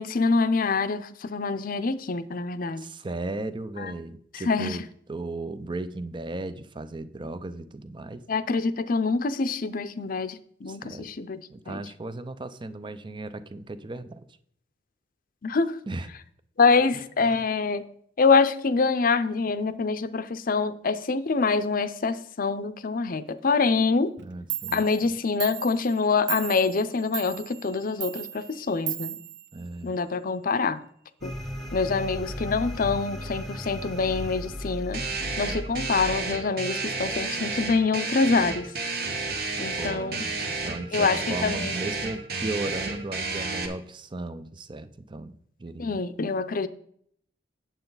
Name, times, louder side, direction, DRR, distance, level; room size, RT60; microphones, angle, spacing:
voice 1, 0.0-2.8 3.8-3.9 4.3-4.8 8.3-11.8 15.4-15.8 16.6-17.9 18.2-24.1 24.7-29.2 29.8-30.8 31.2-31.3 31.7-35.0 35.4-38.7 39.6-40.2 40.9-41.8 45.8-46.7, left 4 dB, 50° left, 0.6 m, -25 dB
voice 2, 2.8-8.2 10.7-11.1 11.5-14.3 15.9-16.1 16.9-17.4 24.2-24.8 29.5-29.9 39.7-45.3 45.6-46.0, right 2 dB, 25° right, 0.5 m, -36 dB
Clock, 24.2-24.3 24.5-30.1, right 13 dB, 75° right, 0.5 m, -37 dB
sound 1, 31.2-36.2, equal, ahead, 1.2 m, -36 dB
sound 2, 34.9-43.7, right 3 dB, 60° right, 1.3 m, -31 dB
9.1 x 7.8 x 4.0 m
head